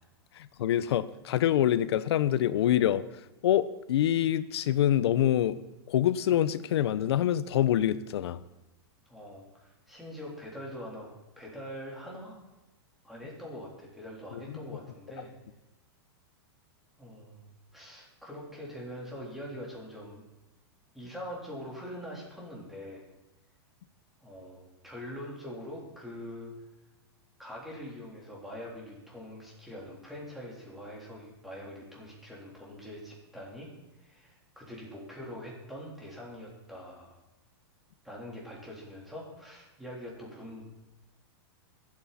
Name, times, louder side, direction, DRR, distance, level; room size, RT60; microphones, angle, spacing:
voice 1, 0.3-5.6 5.9-8.4 14.3-14.4, left 11 dB, 75° left, 15 dB, 0.8 m, -26 dB
voice 2, 9.1-11.1 11.4-12.4 13.0-15.3 17.0-17.4 17.7-20.2 20.9-23.1 24.2-26.5 27.4-33.7 34.0-37.1 38.0-40.7, equal, ahead, -4 dB, 3.7 m, -43 dB
23.0 x 8.8 x 4.2 m, 0.99 s
supercardioid pair, 150°, 14 cm